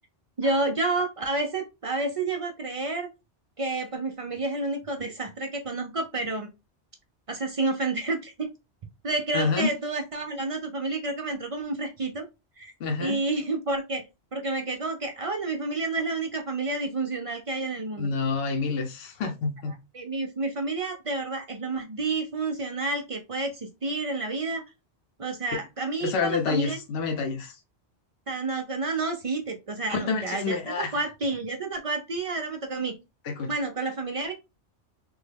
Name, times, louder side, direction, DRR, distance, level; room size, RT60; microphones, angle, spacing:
voice 1, 0.4-3.1 3.6-6.5 7.3-8.5 9.0-12.3 12.6-12.7 13.0-14.0 14.3-18.1 19.9-24.6 25.2-26.8 28.3-33.0 33.5-34.3, right 3 dB, 50° right, 0.4 m, -30 dB
voice 2, 9.3-9.7 12.8-13.2 18.0-19.7 26.0-27.6 29.9-31.0 33.2-33.5, left 4 dB, 65° left, 0.8 m, -28 dB
3.4 x 2.2 x 3.3 m
omnidirectional pair, 1.2 m